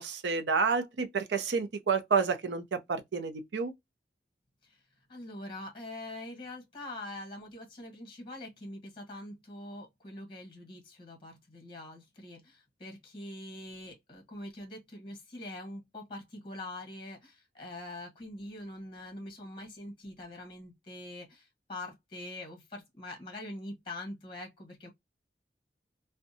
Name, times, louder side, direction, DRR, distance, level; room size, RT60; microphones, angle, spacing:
voice 1, 0.0-3.7, right 5 dB, 80° right, 0.5 m, -29 dB
voice 2, 5.1-24.9, left 1 dB, 30° left, 0.9 m, -44 dB
2.6 x 2.1 x 2.5 m
head